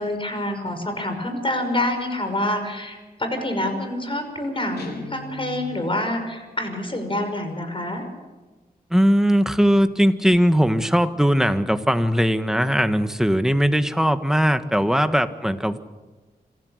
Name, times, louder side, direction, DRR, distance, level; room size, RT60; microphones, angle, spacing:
voice 1, 0.0-8.1, left 1 dB, 35° left, 6 dB, 5.7 m, -27 dB
Guitar, 4.8-5.9, left 4 dB, 85° left, 4.2 m, -38 dB
voice 2, 8.9-15.8, equal, 5° right, 9 dB, 1.5 m, -19 dB
26.5 x 15.5 x 6.6 m, 1.2 s
cardioid pair, 60°, 16 cm